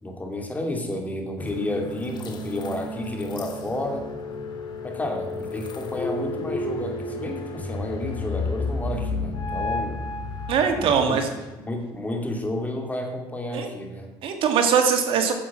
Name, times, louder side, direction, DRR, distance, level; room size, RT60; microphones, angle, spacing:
voice 1, 0.0-4.1 4.8-10.0 10.7-11.2 11.6-14.1, left 1 dB, 15° left, 2 dB, 2.8 m, -31 dB
sound 1, 1.4-11.1, left 2 dB, 50° left, 1.8 m, -31 dB
voice 2, 10.5-11.3 13.5-13.7 14.2-15.3, right 6 dB, 70° right, 5 dB, 1.8 m, -21 dB
9.6 x 7.5 x 7.4 m, 1.1 s
supercardioid pair, 90°, 10 cm